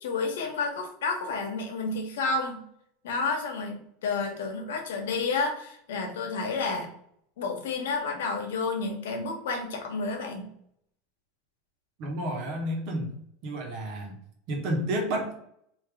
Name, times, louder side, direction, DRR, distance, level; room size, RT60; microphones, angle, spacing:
voice 1, 0.0-2.6 3.0-6.9 7.4-10.5, left 4 dB, 90° left, 3 dB, 1.0 m, -30 dB
voice 2, 12.0-13.1 13.4-14.1 14.5-15.3, right 1 dB, 55° right, 2 dB, 1.1 m, -30 dB
3.5 x 2.7 x 3.4 m, 0.70 s
supercardioid pair, 130°, 0 cm